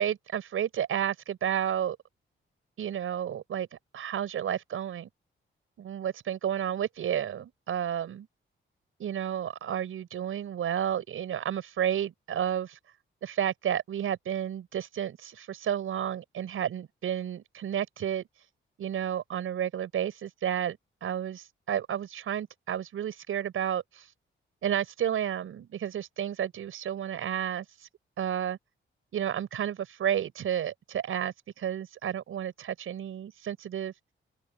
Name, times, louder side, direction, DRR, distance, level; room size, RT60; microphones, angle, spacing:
voice 1, 0.0-2.0 2.8-3.7 3.9-5.1 5.8-8.3 9.0-12.8 13.2-18.3 18.8-24.1 24.6-27.7 28.2-28.6 29.1-33.9, right 9 dB, 85° right, 5.8 m, -31 dB
open air
wide cardioid pair, 180°, 21 cm